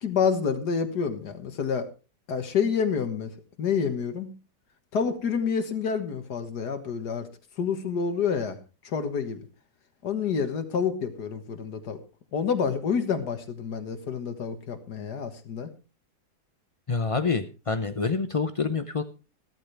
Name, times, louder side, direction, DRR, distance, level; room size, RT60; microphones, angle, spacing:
voice 1, 0.0-1.9 2.3-3.3 3.6-4.3 4.9-7.3 7.6-8.6 8.8-9.4 10.0-12.0 12.3-15.7, left 6 dB, 80° left, 8 dB, 2.0 m, -28 dB
voice 2, 16.9-19.0, left 4 dB, 55° left, 9 dB, 0.3 m, -27 dB
14.5 x 13.5 x 3.3 m, 0.33 s
omnidirectional pair, 1.7 m